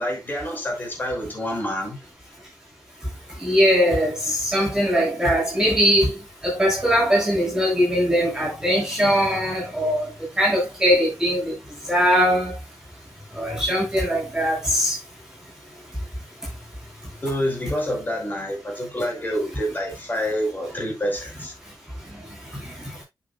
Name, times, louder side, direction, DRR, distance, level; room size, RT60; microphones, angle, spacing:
voice 1, 0.0-2.0 13.5-13.6 17.2-21.5, equal, 25° left, 5.5 m, -27 dB
voice 2, 3.4-6.1 6.4-10.0 10.4-11.5 11.9-12.5 13.4-15.0, equal, 10° right, 6.7 m, -20 dB
11.0 x 7.4 x 2.2 m
wide cardioid pair, 145°, 7 cm